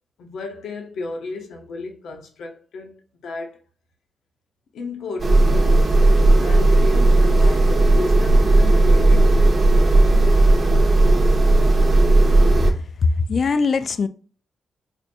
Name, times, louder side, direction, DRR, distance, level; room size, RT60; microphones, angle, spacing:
voice 1, 0.2-3.6 4.7-10.6, left 3 dB, 85° left, 0.7 m, -34 dB
sound 1, 5.2-12.7, right 2 dB, 40° right, 0.7 m, -15 dB
voice 2, 12.5-14.1, left 4 dB, 50° left, 0.3 m, -22 dB
4.6 x 2.5 x 2.6 m
cardioid pair, 120°, 0 cm